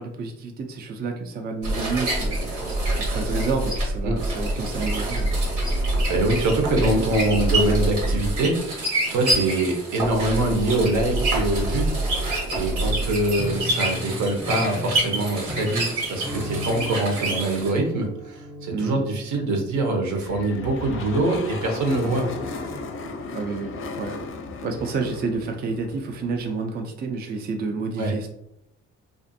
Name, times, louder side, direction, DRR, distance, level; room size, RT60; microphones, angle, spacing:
voice 1, 0.0-2.4 2.9-5.5 12.8-13.0 18.7-19.1 22.0-22.3 23.3-24.2 24.6-28.3, right 4 dB, 35° right, 4 dB, 0.4 m, -30 dB
sound 1, 1.6-17.7, right 1 dB, 90° right, 1.2 m, -26 dB
voice 2, 6.1-8.8 9.1-11.9 12.5-22.2 28.0-28.1, right 2 dB, 70° right, 2 dB, 0.8 m, -24 dB
Piano, 13.4-20.2, left 1 dB, 5° left, 0.8 m, -36 dB
sound 2, 20.2-26.6, left 3 dB, 45° left, 0.5 m, -35 dB
2.5 x 2.4 x 2.5 m, 0.80 s
cardioid pair, 90°, 30 cm